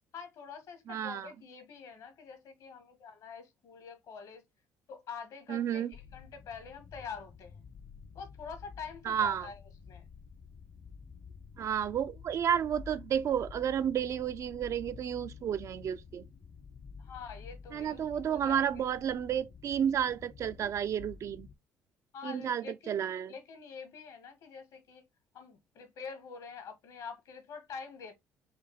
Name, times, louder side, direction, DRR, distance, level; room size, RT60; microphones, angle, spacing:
voice 1, 0.1-4.4 4.9-7.6 8.1-10.1 17.0-18.8 22.1-23.0 23.3-25.0 25.3-28.1, left 6 dB, 65° left, 1.6 m, -46 dB
voice 2, 0.9-1.3 5.5-5.9 9.1-9.5 11.6-16.2 17.7-21.5 22.2-23.3, right 9 dB, 50° right, 0.4 m, -31 dB
sound 1, 5.9-21.5, left 5 dB, 45° left, 0.8 m, -50 dB
4.9 x 2.7 x 3.1 m
supercardioid pair, 70°, 6 cm